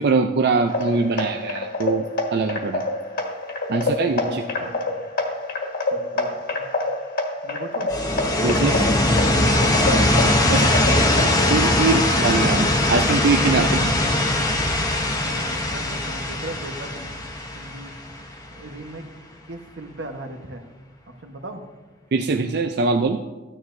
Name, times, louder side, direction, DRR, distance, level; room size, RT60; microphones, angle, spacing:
voice 1, 0.0-2.1 2.3-2.8 3.7-4.7 8.4-8.9 9.4-9.5 10.1-10.7 11.5-13.7 14.0-14.2 22.1-23.2, right 4 dB, 60° right, 5 dB, 0.4 m, -22 dB
sound 1, 0.7-11.5, left 2 dB, 55° left, 1.5 m, -27 dB
voice 2, 3.7-4.7 5.9-6.6 7.4-7.9 11.8-12.4 13.6-14.1 15.1-17.2 17.5-17.9 18.5-19.0 19.5-20.6 21.2-21.6, right 2 dB, 85° right, 5 dB, 1.1 m, -37 dB
sound 2, 7.9-18.6, left 1 dB, 20° left, 0.9 m, -21 dB
14.0 x 9.8 x 2.6 m, 1.2 s
head